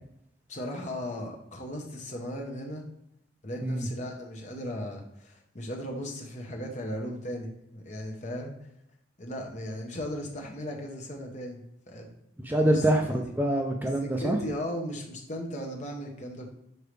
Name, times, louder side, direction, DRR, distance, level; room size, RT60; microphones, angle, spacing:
voice 1, 0.5-2.9 3.4-8.5 9.2-11.6 11.9-12.1 12.5-12.8 14.0-16.5, equal, 40° left, 1 dB, 1.0 m, -37 dB
voice 2, 12.4-14.4, right 1 dB, 10° right, 2 dB, 0.4 m, -25 dB
6.7 x 4.6 x 3.3 m, 0.77 s
head